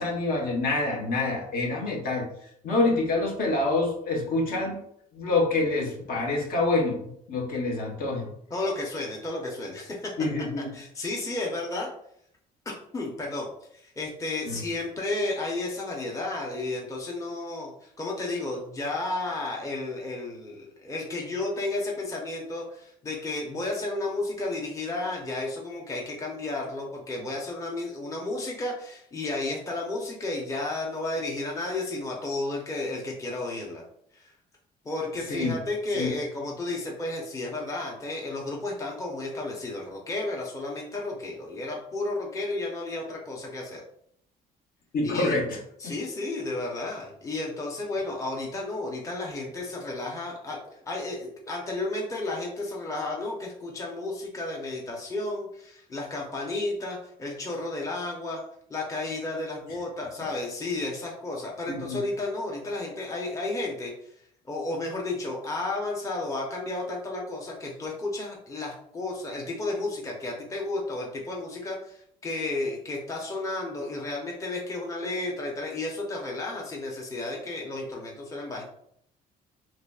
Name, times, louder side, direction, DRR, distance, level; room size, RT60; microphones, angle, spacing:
voice 1, 0.0-2.2 2.6-4.8 5.1-8.3 10.2-10.7 14.4-14.6 35.3-35.5 35.9-36.1 44.9-45.4 61.7-62.0, left 2 dB, 60° left, 0 dB, 1.1 m, -26 dB
voice 2, 8.5-10.1 10.7-11.9 12.9-33.8 34.1-34.3 34.8-43.8 45.0-45.4 45.8-58.4 58.7-63.9 64.5-78.6, left 2 dB, 20° left, -2 dB, 0.7 m, -32 dB
3.9 x 3.1 x 2.3 m, 0.69 s
cardioid pair, 110°, 17 cm